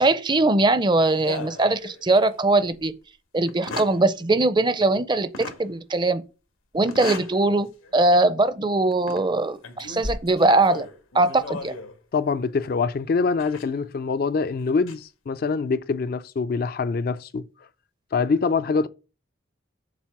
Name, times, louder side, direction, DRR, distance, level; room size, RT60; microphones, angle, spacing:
voice 1, 0.0-2.9 3.3-6.2 6.7-10.9 11.1-11.7, right 2 dB, 20° right, 0.5 m, -21 dB
sound 1, 1.2-2.3 2.7-2.8 3.5-4.0 5.3-5.6 6.8-7.4 7.8-8.0 8.9-9.3 9.6-12.0 13.4-13.6 14.6-14.9, left 3 dB, 90° left, 1.4 m, -35 dB
voice 2, 12.1-17.4 18.1-18.9, left 4 dB, 45° left, 0.3 m, -24 dB
7.4 x 4.0 x 5.8 m
head